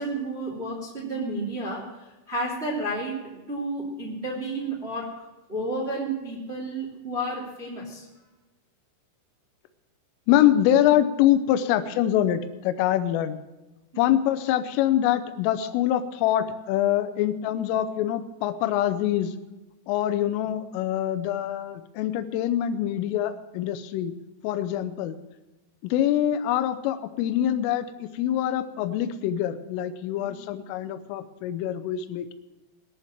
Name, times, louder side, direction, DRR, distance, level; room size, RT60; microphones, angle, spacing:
voice 1, 0.0-8.1 13.9-14.1 20.2-20.3 30.2-30.4, right 1 dB, 20° right, -4 dB, 1.6 m, -32 dB
voice 2, 10.3-13.4 14.0-19.3 19.9-24.1 24.4-25.2 25.8-32.3, left 11 dB, 80° left, 10 dB, 3.3 m, -24 dB
21.0 x 7.1 x 7.3 m, 1.1 s
omnidirectional pair, 5.9 m